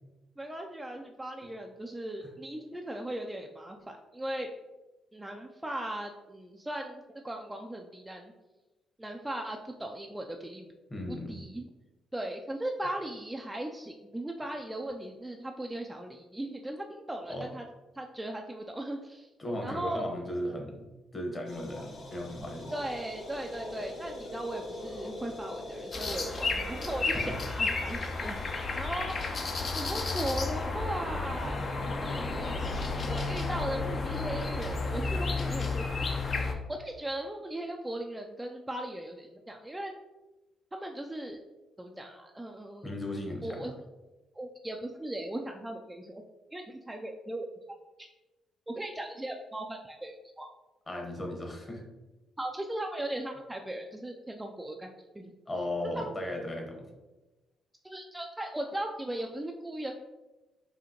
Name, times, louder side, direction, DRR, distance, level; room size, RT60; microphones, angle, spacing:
voice 1, 0.4-4.5 5.1-8.3 9.0-10.7 11.1-11.7 12.1-17.7 17.9-19.2 19.6-20.1 22.7-31.6 32.0-39.9 40.7-41.4 41.8-42.9 43.4-43.7 44.4-46.2 46.5-47.5 48.7-50.5 52.4-54.9 55.1-55.7 55.9-56.1 57.8-59.9, right 1 dB, 10° right, 2 dB, 0.3 m, -38 dB
voice 2, 10.9-11.4 17.3-17.5 19.4-22.7 27.1-27.4 42.8-43.7 50.9-51.8 55.5-56.9, left 1 dB, 25° left, 1 dB, 1.0 m, -36 dB
sound 1, 21.5-28.8, left 1 dB, 60° left, 1.1 m, -43 dB
sound 2, 25.9-36.5, left 3 dB, 40° left, 0.5 m, -32 dB
5.0 x 2.7 x 2.9 m, 1.1 s
cardioid pair, 90°, 0 cm